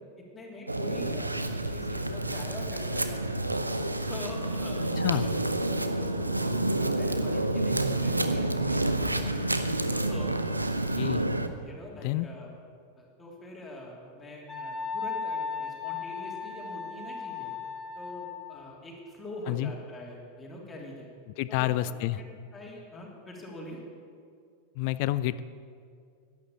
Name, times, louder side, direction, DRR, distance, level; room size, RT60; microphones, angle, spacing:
voice 1, 0.2-3.2 4.0-5.4 6.0-9.3 9.9-10.6 11.0-11.3 11.6-12.5 13.0-17.5 17.9-21.1 21.5-23.8, left 1 dB, 15° left, -2 dB, 3.2 m, -44 dB
sound 1, 0.7-11.5, right 1 dB, 85° right, 0.7 m, -29 dB
Wind instrument woodwind instrument, 14.5-18.6, left 5 dB, ahead, 4.1 m, -36 dB
voice 2, 21.4-22.2 24.8-25.4, left 15 dB, 45° left, 16 dB, 0.4 m, -28 dB
11.5 x 11.0 x 7.4 m, 2.3 s
figure-of-eight pair, 90°, 0 cm